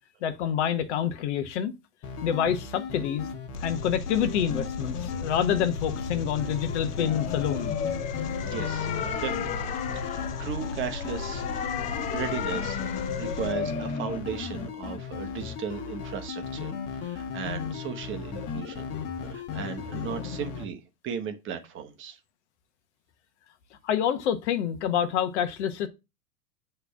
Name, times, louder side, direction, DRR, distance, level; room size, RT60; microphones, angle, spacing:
voice 1, 0.2-1.7 2.2-3.3 3.6-7.7 23.8-25.9, left 9 dB, 50° left, 1.1 m, -27 dB
sound 1, 2.0-20.7, left 6 dB, 30° left, 1.3 m, -36 dB
Engine, 3.5-13.5, left 3 dB, 85° left, 0.6 m, -37 dB
sound 2, 7.1-14.2, left 8 dB, 15° left, 0.5 m, -34 dB
voice 2, 8.5-11.5 12.1-18.9 19.2-22.2, right 7 dB, 25° right, 1.1 m, -36 dB
8.1 x 3.4 x 5.6 m
figure-of-eight pair, 95°, 45 cm